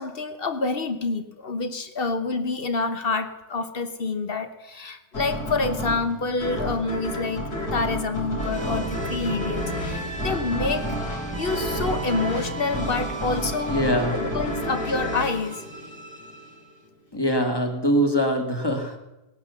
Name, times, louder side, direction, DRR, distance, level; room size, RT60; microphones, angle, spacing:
voice 1, 0.0-10.9 11.4-13.8 14.2-15.6, left 3 dB, 40° left, 9 dB, 1.0 m, -27 dB
sound 1, 5.1-16.4, equal, 55° left, 4.2 m, -31 dB
sound 2, 8.4-16.8, right 2 dB, 15° right, 1.8 m, -34 dB
voice 2, 13.7-14.2 17.1-19.0, equal, 15° left, 4 dB, 1.8 m, -23 dB
19.0 x 10.5 x 6.9 m, 1.0 s
omnidirectional pair, 2.0 m